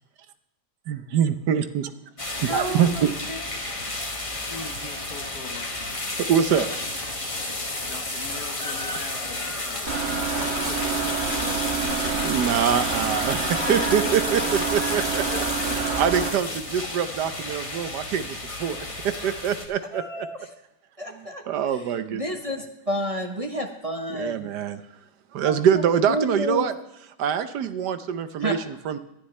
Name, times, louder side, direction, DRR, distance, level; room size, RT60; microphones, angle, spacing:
voice 1, 0.9-1.9 2.4-3.1 6.3-6.7 12.2-15.2 16.0-18.8 19.2-20.3 21.1-22.3 24.1-24.8 25.3-26.7 27.2-29.0, right 8 dB, 80° right, 11 dB, 1.4 m, -24 dB
sound 1, 2.2-19.7, left 2 dB, 20° left, 1.5 m, -31 dB
voice 2, 2.5-3.4 13.5-15.0 19.9-20.4 21.0-21.4 21.7-24.5 25.4-25.8 26.1-26.6 28.4-28.5, equal, 25° right, 4 dB, 0.9 m, -31 dB
voice 3, 4.5-6.1 7.8-13.0 15.2-15.4, left 4 dB, 65° left, 6 dB, 1.8 m, -41 dB
sound 2, 9.9-16.3, right 5 dB, 40° right, 1.4 m, -28 dB
19.0 x 11.5 x 3.2 m, 0.87 s
omnidirectional pair, 1.8 m